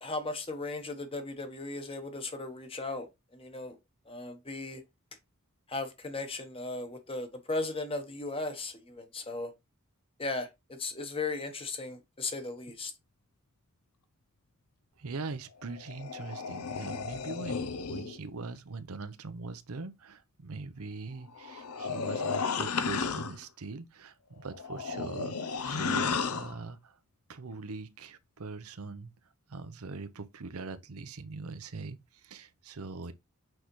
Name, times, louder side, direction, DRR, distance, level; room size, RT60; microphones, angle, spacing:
voice 1, 0.0-3.8 4.1-4.8 5.7-9.5 10.2-12.9, left 3 dB, 25° left, 1.1 m, -37 dB
voice 2, 15.0-27.0 27.3-29.1 29.5-33.1, right 3 dB, 80° right, 0.7 m, -42 dB
sound 1, 15.6-18.2 21.3-23.4 24.4-26.6, left 5 dB, 85° left, 0.7 m, -33 dB
6.2 x 4.9 x 3.0 m
head